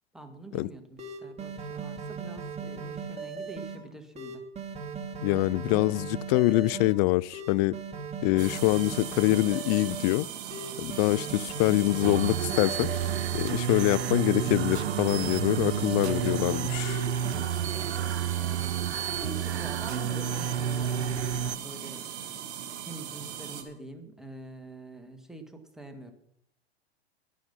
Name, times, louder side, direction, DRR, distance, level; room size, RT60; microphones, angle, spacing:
voice 1, 0.1-4.4 19.2-22.0 22.8-26.1, right 2 dB, ahead, 1.8 m, -45 dB
sound 1, 0.6-0.7 1.0-3.8 4.2-6.9 7.3-10.1 10.5-13.3 13.7-16.5 16.8-17.3, right 5 dB, 20° right, 2.6 m, -38 dB
voice 2, 5.2-7.8 8.2-10.3 10.8-17.0, left 20 dB, 40° left, 0.4 m, -25 dB
sound 2, 8.4-23.6, right 9 dB, 60° right, 2.6 m, -39 dB
sound 3, 12.0-21.6, right 8 dB, 85° right, 0.7 m, -30 dB
11.5 x 11.5 x 5.6 m
hypercardioid pair, 105°, 32 cm